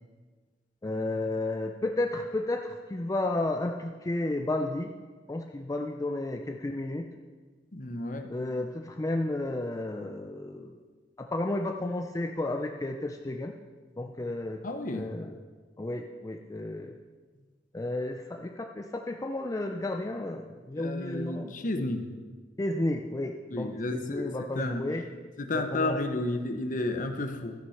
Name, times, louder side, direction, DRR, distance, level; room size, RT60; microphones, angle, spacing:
voice 1, 0.8-4.9 5.3-7.1 8.3-10.8 11.2-13.5 14.0-14.6 14.9-15.3 15.8-17.0 17.7-21.9 22.6-25.0 25.5-26.0, left 2 dB, 20° left, 3 dB, 0.4 m, -32 dB
voice 2, 7.7-8.3 14.6-15.1 20.8-22.1 23.5-24.8 25.4-27.5, left 2 dB, 45° left, 6 dB, 0.8 m, -32 dB
12.5 x 6.1 x 5.6 m, 1.5 s
head